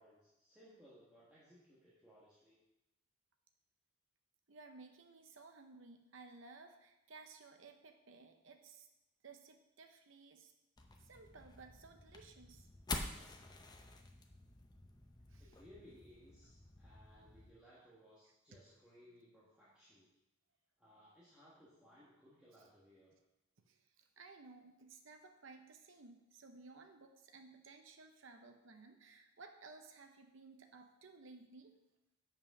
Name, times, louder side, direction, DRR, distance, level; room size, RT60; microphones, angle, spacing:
voice 1, 0.0-2.6 15.4-20.1 20.8-23.1, equal, 5° right, -9 dB, 1.4 m, -63 dB
voice 2, 4.5-8.9 9.2-10.5 11.0-12.7 13.6-13.9 15.3-15.5 23.7-31.8, right 4 dB, 60° right, 5 dB, 0.7 m, -57 dB
sound 1, 10.8-17.5, left 2 dB, 20° left, 0.6 m, -49 dB
7.1 x 5.7 x 5.9 m, 0.95 s
head